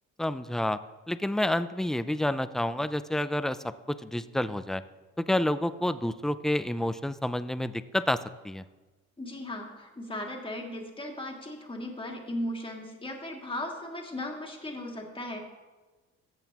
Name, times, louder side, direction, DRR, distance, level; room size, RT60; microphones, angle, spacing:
voice 1, 0.2-0.8 1.1-3.6 3.9-4.8 5.2-8.6, left 1 dB, ahead, 13 dB, 0.3 m, -29 dB
voice 2, 9.2-15.4, left 1 dB, 15° left, 1 dB, 1.9 m, -37 dB
14.0 x 8.0 x 2.9 m, 1.2 s
cardioid pair, 90°, 30 cm